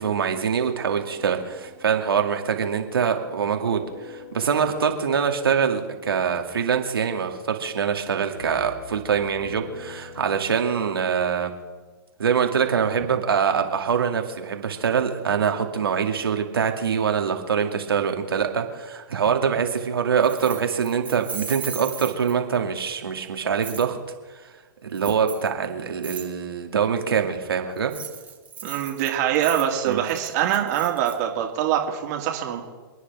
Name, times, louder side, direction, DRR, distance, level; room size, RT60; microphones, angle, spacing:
voice 1, 0.0-11.5 12.2-24.0 24.8-27.9 29.9-30.0, right 7 dB, 85° right, 4 dB, 2.3 m, -24 dB
sound 1, 0.9-10.8, left 5 dB, 45° left, 5.2 m, -46 dB
Keys jangling, 20.2-22.6 23.6-23.9 24.9-25.5 26.0-26.3 27.8-31.1, right 6 dB, 15° right, 1.9 m, -37 dB
voice 2, 28.6-32.6, right 10 dB, 50° right, 1 dB, 2.4 m, -24 dB
29.0 x 10.0 x 3.6 m, 1.4 s
hypercardioid pair, 130°, 12 cm